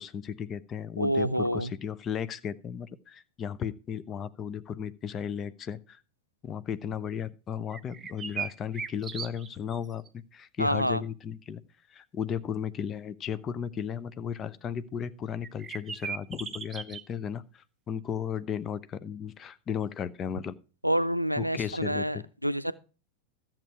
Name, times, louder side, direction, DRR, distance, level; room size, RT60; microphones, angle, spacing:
voice 1, 0.0-6.0 6.4-11.6 11.9-20.6 21.4-22.2, left 8 dB, 25° left, 0.8 m, -35 dB
voice 2, 1.0-1.7 10.6-11.0 20.8-22.7, equal, 90° right, 0.5 m, -27 dB
sound 1, 7.7-9.8 10.1-10.2 15.4-17.0, right 7 dB, 20° right, 0.8 m, -37 dB
13.5 x 7.5 x 4.7 m
figure-of-eight pair, 90°, 0 cm